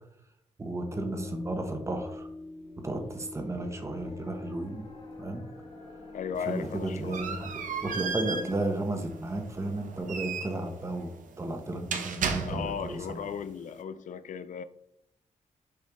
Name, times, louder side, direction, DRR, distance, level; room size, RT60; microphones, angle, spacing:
voice 1, 0.6-2.3 2.8-4.8 5.2-5.4 6.4-7.5 7.8-11.1 11.4-13.3, right 2 dB, 20° right, 0.9 m, -33 dB
sound 1, 0.9-10.0, left 2 dB, 5° left, 1.1 m, -46 dB
sound 2, 2.6-8.6, left 1 dB, 55° left, 2.6 m, -51 dB
voice 2, 6.1-7.4 12.3-14.6, left 7 dB, 75° left, 0.4 m, -36 dB
sound 3, 6.4-13.0, right 5 dB, 80° right, 0.8 m, -35 dB
6.8 x 4.5 x 3.5 m
wide cardioid pair, 155°, 13 cm